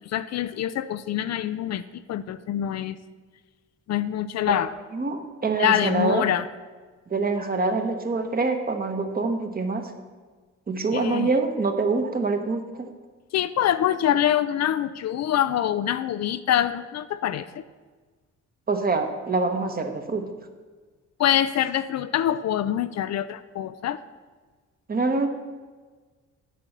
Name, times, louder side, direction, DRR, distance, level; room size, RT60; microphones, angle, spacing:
voice 1, 0.1-3.0 3.9-4.7 5.5-6.5 10.9-11.3 13.3-17.6 21.2-24.0, left 11 dB, 60° left, 13 dB, 0.5 m, -25 dB
voice 2, 4.9-6.2 7.1-9.9 10.7-12.9 18.7-20.3 24.9-25.3, right 3 dB, 30° right, 5 dB, 1.2 m, -25 dB
8.5 x 5.2 x 7.3 m, 1.4 s
cardioid pair, 90°, 30 cm